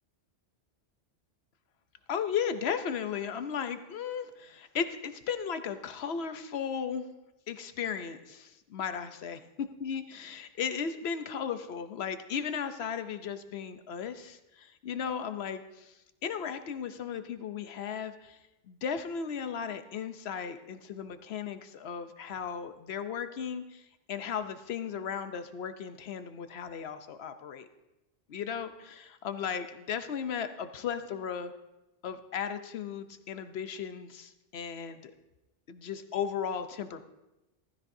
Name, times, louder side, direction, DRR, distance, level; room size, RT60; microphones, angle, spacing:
voice 1, 2.1-7.1 7.5-15.9 16.2-18.4 18.7-27.7 28.3-31.5 32.0-35.1 35.7-37.0, left 7 dB, 60° left, 10 dB, 0.9 m, -36 dB
15.0 x 14.0 x 2.7 m, 0.99 s
omnidirectional pair, 1.3 m